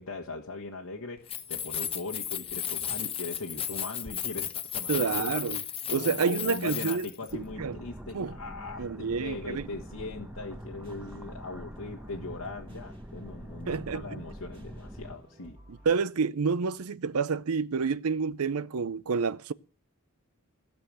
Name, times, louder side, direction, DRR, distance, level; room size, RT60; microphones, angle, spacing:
voice 1, 0.0-5.3 5.9-15.6, left 3 dB, 80° left, 1.5 m, -40 dB
Keys jangling, 1.2-7.3, left 9 dB, 25° left, 0.9 m, -34 dB
voice 2, 4.9-5.6 5.9-7.1 7.3-7.8 8.1-8.3 8.8-9.7 13.7-14.2 15.7-19.5, right 5 dB, 80° right, 0.6 m, -29 dB
sound 1, 7.3-15.2, equal, 5° right, 1.0 m, -44 dB
sound 2, 9.6-15.9, right 1 dB, 25° right, 2.4 m, -54 dB
16.5 x 6.9 x 8.9 m
head